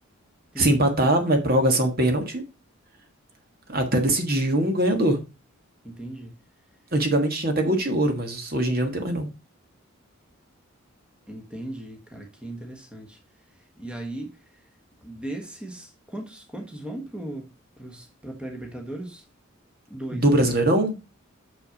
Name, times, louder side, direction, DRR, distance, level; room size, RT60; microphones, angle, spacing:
voice 1, 0.6-2.4 3.7-5.2 6.9-9.3 20.1-21.0, right 1 dB, 45° right, 1.5 m, -22 dB
voice 2, 5.8-6.4 11.3-14.7 15.0-19.3 19.9-20.5, right 1 dB, 5° right, 1.4 m, -38 dB
6.5 x 5.8 x 5.0 m
head